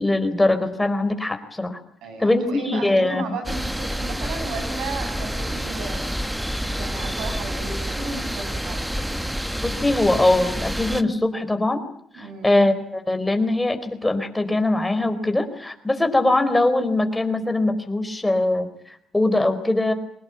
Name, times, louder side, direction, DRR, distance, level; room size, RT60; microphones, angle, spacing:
voice 1, 0.0-1.8 2.2-3.3 9.6-11.8 12.1-19.9, left 2 dB, 10° left, 7 dB, 4.4 m, -22 dB
voice 2, 2.0-6.2 6.8-8.9 12.1-12.5, right 3 dB, 80° right, 6 dB, 7.5 m, -34 dB
sound 1, 3.4-11.0, equal, 5° right, 1.5 m, -28 dB
23.5 x 19.5 x 9.0 m, 0.71 s
cardioid pair, 90°, 0 cm